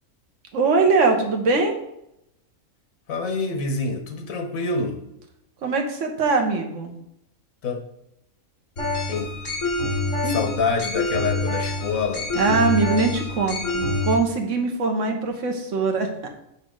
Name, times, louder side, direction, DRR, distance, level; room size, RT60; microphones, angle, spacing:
voice 1, 0.5-1.8 5.6-6.9 10.2-10.4 12.3-16.3, right 4 dB, 65° right, 3 dB, 1.3 m, -22 dB
voice 2, 3.1-5.0 7.6-7.8 9.1-9.3 10.2-12.3, left 4 dB, 85° left, 4 dB, 1.4 m, -26 dB
sound 1, 8.8-14.1, left 2 dB, 65° left, 2.2 m, -26 dB
6.2 x 5.7 x 3.8 m, 0.82 s
omnidirectional pair, 1.4 m